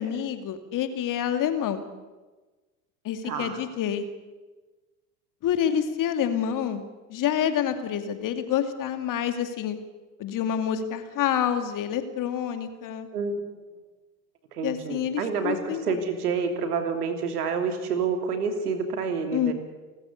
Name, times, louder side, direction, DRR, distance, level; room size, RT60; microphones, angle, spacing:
voice 1, 0.0-1.8 3.0-4.1 5.4-6.8 7.1-9.8 10.2-13.1 14.6-16.0 19.3-19.5, left 9 dB, 45° left, 8 dB, 2.4 m, -27 dB
voice 2, 3.2-3.6 13.1-13.4 14.5-19.5, right 5 dB, 75° right, 6 dB, 3.2 m, -28 dB
30.0 x 14.0 x 8.2 m, 1.2 s
figure-of-eight pair, 75°, 46 cm